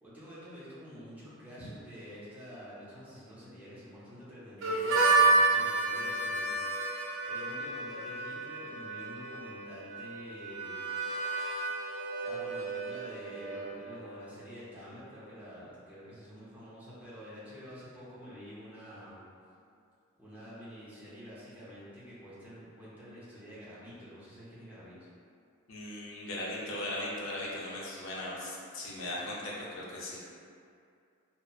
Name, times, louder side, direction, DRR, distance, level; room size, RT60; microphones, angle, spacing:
voice 1, 0.0-7.0 7.2-11.2 12.2-19.2 20.2-25.1, equal, 10° right, -11 dB, 0.6 m, -48 dB
Harmonica, 4.6-14.2, right 3 dB, 60° right, 0.4 m, -30 dB
voice 2, 25.7-30.2, left 1 dB, 70° left, -5 dB, 0.5 m, -38 dB
2.8 x 2.1 x 2.3 m, 2.4 s
head